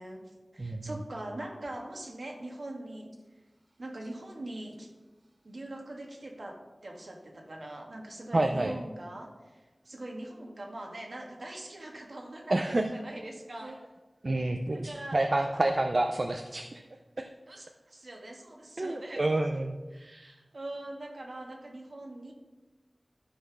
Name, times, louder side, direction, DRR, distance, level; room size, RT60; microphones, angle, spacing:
voice 1, 0.0-3.1 3.8-4.9 5.4-13.8 14.7-15.7 17.5-19.3 19.9-22.3, right 1 dB, 70° right, 1 dB, 1.8 m, -42 dB
voice 2, 0.6-0.9 8.3-8.7 12.5-12.8 13.6-13.7 14.2-16.8 17.2-17.3 18.8-19.8, right 2 dB, 55° right, 5 dB, 0.6 m, -28 dB
12.5 x 4.4 x 6.0 m, 1.2 s
wide cardioid pair, 65°, 0 cm